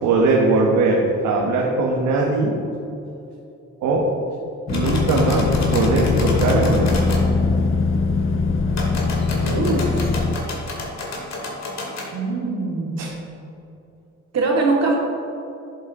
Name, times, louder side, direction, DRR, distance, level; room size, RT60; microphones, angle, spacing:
voice 1, 0.0-2.6 3.8-4.1 4.7-7.1 13.0-13.1, right 3 dB, 90° right, -2 dB, 1.2 m, -20 dB
sound 1, 4.7-7.2 8.7-12.1, left 2 dB, 60° left, 2.2 m, -31 dB
sound 2, 4.7-10.4, left 4 dB, 45° left, 0.7 m, -21 dB
voice 2, 9.4-10.1 12.1-13.1 14.3-15.0, right 3 dB, 55° right, -2 dB, 2.3 m, -22 dB
10.5 x 7.8 x 3.7 m, 2.8 s
cardioid pair, 90°, 30 cm